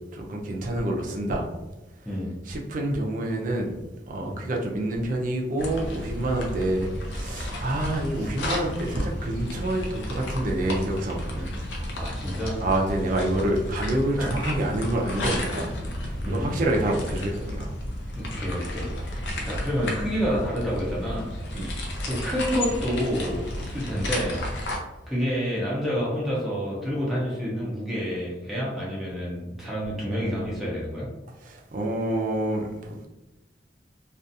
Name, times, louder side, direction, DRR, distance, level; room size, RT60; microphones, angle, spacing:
voice 1, 0.1-1.5 2.5-3.7 4.1-11.5 12.6-15.7 16.0-17.7 21.5-21.7 31.4-33.1, right 1 dB, 50° right, 0 dB, 0.5 m, -27 dB
sound 1, 5.6-24.8, left 1 dB, 80° left, 0.6 m, -32 dB
voice 2, 12.0-12.6 14.2-14.4 16.2-16.7 18.1-21.3 21.7-24.4 25.1-31.1, equal, ahead, -7 dB, 0.6 m, -29 dB
2.4 x 2.4 x 2.6 m, 1.0 s
head